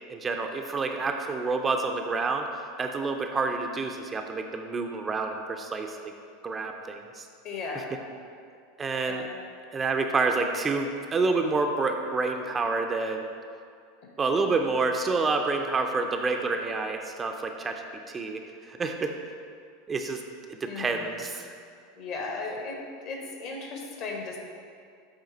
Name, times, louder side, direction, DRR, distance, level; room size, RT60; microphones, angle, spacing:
voice 1, 0.1-2.5 2.8-6.1 6.4-7.3 8.8-9.2 9.7-13.3 14.2-19.2 19.9-20.2 20.6-21.5, right 3 dB, 20° right, 4 dB, 0.5 m, -28 dB
voice 2, 7.4-8.0 9.0-9.4 20.6-21.2 22.0-24.4, left 3 dB, 50° left, 0 dB, 1.3 m, -36 dB
7.9 x 3.8 x 4.1 m, 2.2 s
figure-of-eight pair, 85°, 0 cm